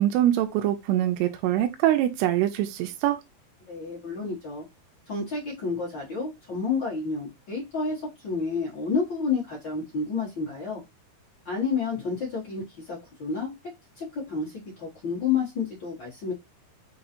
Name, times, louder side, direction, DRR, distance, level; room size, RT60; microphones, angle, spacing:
voice 1, 0.0-3.2, right 12 dB, 85° right, 2.5 m, -24 dB
voice 2, 3.7-4.6 5.1-10.8 11.4-13.5 14.0-16.3, left 5 dB, 60° left, 1.1 m, -30 dB
6.4 x 2.4 x 2.8 m
omnidirectional pair, 4.7 m